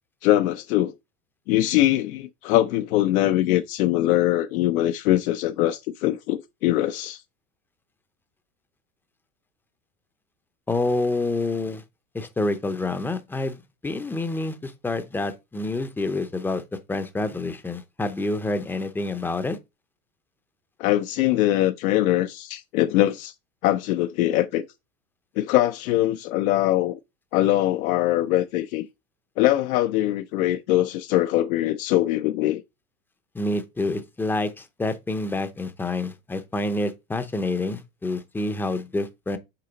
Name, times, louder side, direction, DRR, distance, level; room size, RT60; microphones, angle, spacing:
voice 1, 0.2-0.9 1.5-7.2 20.8-23.3 23.6-24.6 25.4-27.0 27.3-28.9 29.4-32.6, left 14 dB, 85° left, 0.6 m, -22 dB
voice 2, 10.7-11.8 12.1-16.6 16.9-19.6 33.3-39.4, left 2 dB, 5° left, 0.5 m, -27 dB
6.8 x 4.2 x 3.9 m
supercardioid pair, 130°, 41 cm